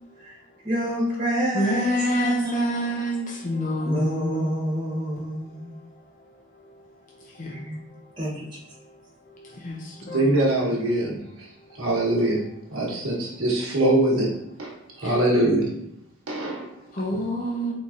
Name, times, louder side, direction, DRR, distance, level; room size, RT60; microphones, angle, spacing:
voice 1, 0.6-3.0 3.8-5.8 7.5-7.8 8.2-8.5, right 1 dB, 20° right, -7 dB, 1.4 m, -28 dB
voice 2, 1.5-8.1 8.7-9.0 9.3-10.3 11.4-12.1 12.4-12.8 13.1-13.2 14.7-15.1 16.3-17.7, equal, 40° left, -2 dB, 0.5 m, -30 dB
voice 3, 10.1-11.2 11.8-12.4 12.7-14.3 14.6-14.7 15.0-15.7 16.3-16.7, right 1 dB, 85° right, -3 dB, 1.1 m, -22 dB
3.9 x 3.1 x 2.5 m, 0.79 s
head